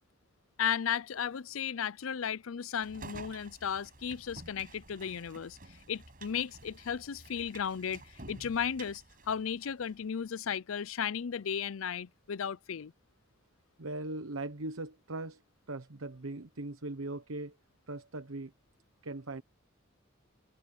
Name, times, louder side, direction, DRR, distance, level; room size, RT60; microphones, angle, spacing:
voice 1, 0.6-5.6 5.9-12.9, left 7 dB, 80° left, 0.5 m, -35 dB
sound 1, 2.8-10.0, right 2 dB, 45° right, 6.4 m, -51 dB
voice 2, 13.8-15.4 15.7-17.5 17.9-18.5 19.0-19.4, right 2 dB, 85° right, 1.1 m, -39 dB
head